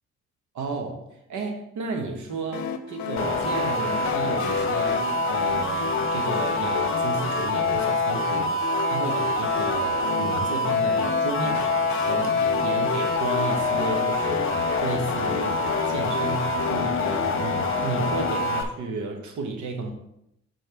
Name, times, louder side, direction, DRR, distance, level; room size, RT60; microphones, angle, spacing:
voice 1, 0.5-1.0 1.3-19.9, right 3 dB, 75° right, 3 dB, 1.1 m, -33 dB
sound 1, 2.5-17.3, left 7 dB, 70° left, 0.7 m, -34 dB
sound 2, 3.2-18.6, left 3 dB, 40° left, 1.0 m, -25 dB
6.7 x 4.1 x 4.5 m, 0.80 s
cardioid pair, 90°, 30 cm